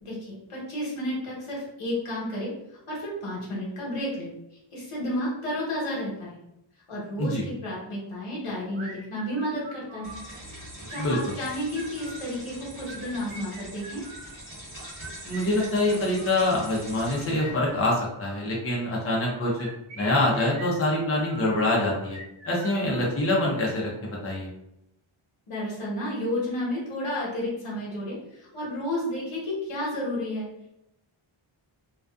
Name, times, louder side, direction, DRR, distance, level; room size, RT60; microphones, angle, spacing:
voice 1, 0.0-2.5 2.9-4.3 4.7-6.3 6.9-10.2 10.9-14.0 25.5-30.5, left 1 dB, 80° left, -5 dB, 1.1 m, -31 dB
sound 1, 8.7-10.3 10.8-12.3 12.8-14.3 14.8-16.4 17.0-18.4 19.1-21.5 22.0-23.5, right 2 dB, 65° right, 0.7 m, -44 dB
sound 2, 10.0-17.9, right 1 dB, 25° right, 1.1 m, -43 dB
voice 2, 11.0-11.3 15.2-19.7 19.9-22.2 22.4-24.5, left 1 dB, 30° left, -3 dB, 0.6 m, -25 dB
2.5 x 2.3 x 2.3 m, 0.83 s
wide cardioid pair, 135°, 50 cm